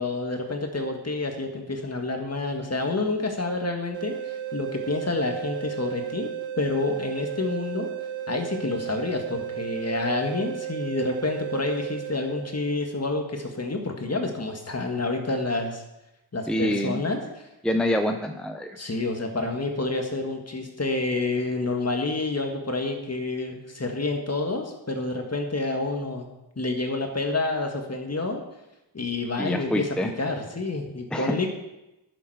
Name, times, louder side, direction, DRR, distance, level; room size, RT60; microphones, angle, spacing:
voice 1, 0.0-6.3 6.6-7.9 8.3-15.8 16.3-17.5 18.8-26.3 26.6-28.4 28.9-31.5, left 3 dB, 35° left, 4 dB, 1.8 m, -28 dB
sound 1, 3.9-12.9, right 9 dB, 85° right, 0.8 m, -34 dB
voice 2, 16.5-17.0 17.6-18.8 29.4-30.1 31.1-31.5, equal, ahead, 5 dB, 0.7 m, -26 dB
11.0 x 7.1 x 4.9 m, 0.93 s
cardioid pair, 65°, 44 cm